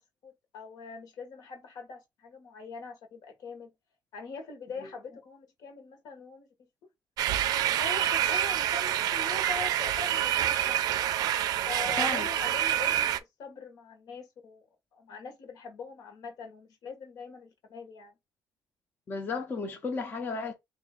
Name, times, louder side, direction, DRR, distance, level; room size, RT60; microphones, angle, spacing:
voice 1, 0.2-3.7 4.1-6.5 7.6-10.8 11.6-14.6 14.9-18.1, left 4 dB, 65° left, 1.2 m, -42 dB
sound 1, 7.2-13.2, right 12 dB, 70° right, 0.4 m, -27 dB
voice 2, 12.0-12.3 19.1-20.5, left 4 dB, 30° left, 0.6 m, -33 dB
3.9 x 2.6 x 3.6 m
cardioid pair, 165°, 7 cm